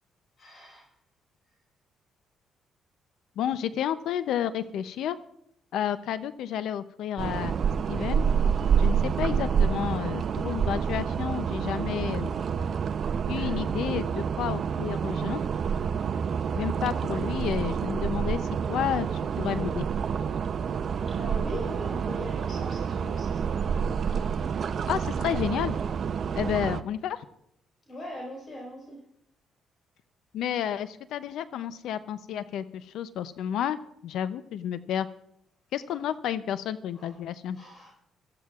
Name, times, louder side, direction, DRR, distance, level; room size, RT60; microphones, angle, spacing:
voice 1, 0.4-0.9 7.7-7.8 13.3-13.7 21.1-23.8 27.9-29.0 36.9-37.2 37.5-37.9, left 1 dB, 45° left, -1 dB, 4.7 m, -41 dB
voice 2, 3.4-5.2 5.7-7.5 7.9-8.3 8.8-12.3 13.3-15.4 16.5-19.1 19.4-19.9 24.9-25.8 26.4-27.2 30.3-35.1 35.7-37.6, left 10 dB, 80° left, 13 dB, 0.5 m, -31 dB
sound 1, 7.2-26.8, right 7 dB, 55° right, 0.6 m, -28 dB
24.0 x 14.5 x 2.4 m, 0.76 s
cardioid pair, 90°, 0 cm